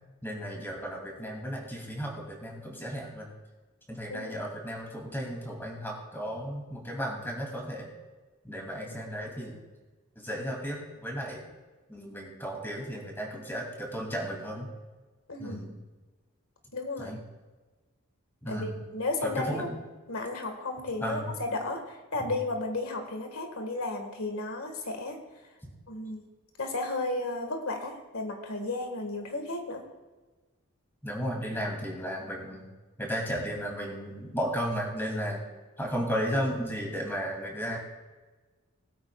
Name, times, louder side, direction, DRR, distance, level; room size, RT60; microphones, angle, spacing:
voice 1, 0.2-3.3 3.9-7.9 8.4-9.6 10.2-11.4 11.9-14.7 15.4-15.8 17.0-17.2 18.4-18.8 19.2-19.7 21.0-21.3 25.6-25.7 31.0-32.6 33.0-35.4 35.8-37.8, equal, 10° left, -1 dB, 2.7 m, -34 dB
voice 2, 15.3-15.6 16.7-17.2 18.5-19.7 20.1-25.2 25.9-26.2 26.6-29.8, left 2 dB, 85° left, 4 dB, 1.7 m, -33 dB
20.5 x 8.8 x 2.4 m, 1.3 s
head